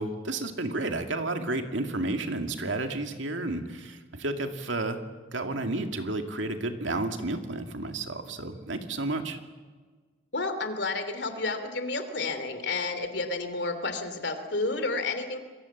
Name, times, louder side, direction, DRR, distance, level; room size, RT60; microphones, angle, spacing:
voice 1, 0.0-5.0 5.3-9.4, right 2 dB, 90° right, 6 dB, 2.3 m, -31 dB
voice 2, 10.3-15.4, left 3 dB, 65° left, 9 dB, 3.1 m, -31 dB
28.5 x 22.5 x 7.3 m, 1.4 s
head